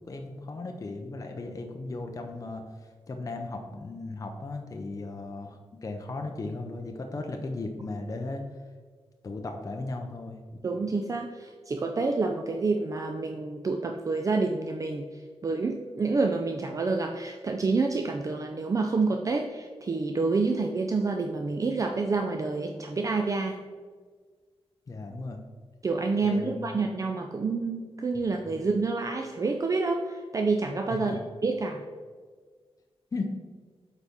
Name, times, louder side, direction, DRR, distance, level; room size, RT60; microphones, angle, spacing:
voice 1, 0.1-2.7 3.1-8.4 9.2-10.4 24.9-25.4 26.2-26.8 28.5-28.6 30.9-31.2 33.1-33.2, left 3 dB, 35° left, 4 dB, 0.6 m, -36 dB
voice 2, 10.6-15.1 15.4-23.5 25.8-31.8, right 3 dB, 35° right, 3 dB, 0.4 m, -28 dB
8.2 x 4.1 x 3.6 m, 1.5 s
wide cardioid pair, 115°, 10 cm